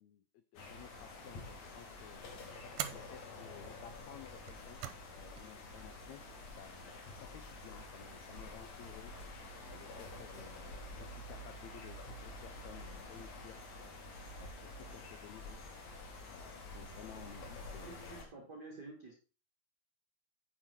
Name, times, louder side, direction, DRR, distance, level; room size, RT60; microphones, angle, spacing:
voice 1, 0.0-2.2 2.9-4.8 5.1-9.1 9.7-13.6 14.4-15.6 16.3-18.5, left 10 dB, 90° left, 10 dB, 1.5 m, -55 dB
sound 1, 0.6-18.2, left 2 dB, 60° left, 3.0 m, -49 dB
sound 2, 1.2-1.6 2.7-3.1 4.4-5.1 5.4-5.5 6.6-7.1, right 11 dB, 75° right, 2.1 m, -44 dB
voice 2, 17.8-19.1, right 3 dB, 50° right, 1 dB, 1.3 m, -50 dB
9.6 x 6.1 x 4.3 m, 0.37 s
omnidirectional pair, 3.9 m